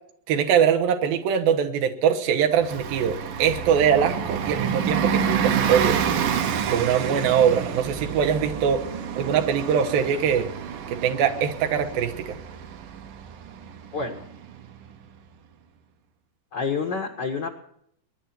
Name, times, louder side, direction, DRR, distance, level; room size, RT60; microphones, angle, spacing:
voice 1, 0.3-6.0 6.7-8.8 9.2-10.5 11.0-12.4, right 8 dB, 85° right, 5 dB, 3.1 m, -22 dB
Bus, 2.6-14.9, right 7 dB, 70° right, 2.6 m, -28 dB
voice 2, 13.9-14.3 16.5-17.5, left 5 dB, 60° left, 2 dB, 1.1 m, -28 dB
22.5 x 10.5 x 4.4 m, 0.71 s
omnidirectional pair, 4.1 m